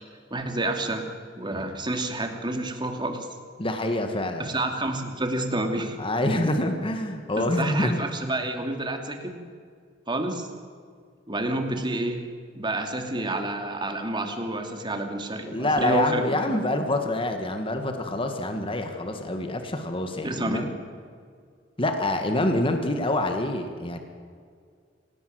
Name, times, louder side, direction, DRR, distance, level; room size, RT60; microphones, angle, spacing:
voice 1, 0.3-1.1 1.4-3.3 4.4-6.0 7.4-9.3 10.1-10.5 11.3-12.2 12.5-16.2 20.2-20.7, right 1 dB, 25° right, 4 dB, 2.7 m, -29 dB
voice 2, 3.6-4.5 6.0-8.0 15.5-20.7 21.8-24.0, left 1 dB, 30° left, 5 dB, 1.9 m, -26 dB
27.5 x 17.5 x 7.9 m, 2.1 s
head